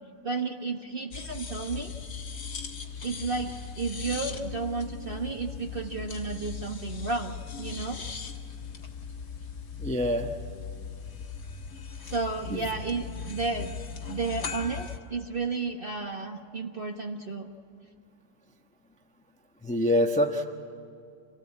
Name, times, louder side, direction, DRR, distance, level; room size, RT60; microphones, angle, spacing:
voice 1, 0.2-1.9 3.0-8.0 12.0-13.8 14.0-17.5, right 4 dB, 35° right, 4 dB, 1.0 m, -32 dB
sound 1, 1.1-15.0, left 6 dB, 50° left, 2.0 m, -39 dB
voice 2, 9.8-10.3 12.5-12.6 19.6-20.5, left 1 dB, 5° left, 5 dB, 0.7 m, -25 dB
27.5 x 18.0 x 8.6 m, 2.4 s
omnidirectional pair, 2.0 m